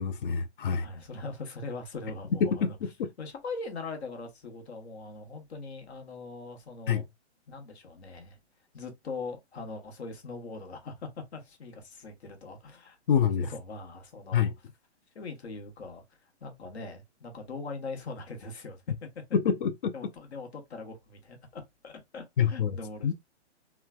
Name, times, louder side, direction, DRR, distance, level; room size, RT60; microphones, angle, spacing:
voice 1, 0.0-0.8 2.4-2.7 6.9-7.0 13.1-13.4 14.3-14.5 19.3-19.9 22.4-22.7 23.0-23.1, left 7 dB, 50° left, 0.5 m, -26 dB
voice 2, 0.7-2.8 3.2-7.0 7.5-8.4 8.7-13.0 13.4-14.5 15.1-18.8 19.9-23.1, left 3 dB, 65° left, 1.2 m, -41 dB
3.1 x 2.2 x 2.2 m
hypercardioid pair, 155°, 34 cm